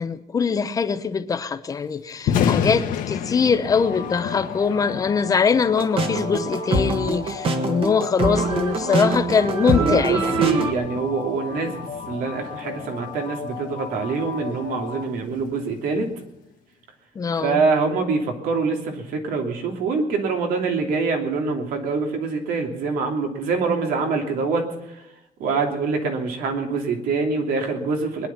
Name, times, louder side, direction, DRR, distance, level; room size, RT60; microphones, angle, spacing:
voice 1, 0.0-10.6 17.1-17.6, left 6 dB, 25° left, 0.8 m, -22 dB
Thunder, 2.1-16.3, left 8 dB, 65° left, 1.4 m, -32 dB
sound 1, 3.7-15.1, left 6 dB, 50° left, 1.6 m, -36 dB
sound 2, 5.7-10.7, right 2 dB, 40° right, 1.6 m, -24 dB
voice 2, 9.8-16.1 17.4-25.0 25.4-28.3, right 4 dB, 80° right, 2.9 m, -25 dB
21.5 x 10.5 x 5.8 m
cardioid pair, 170°, 15 cm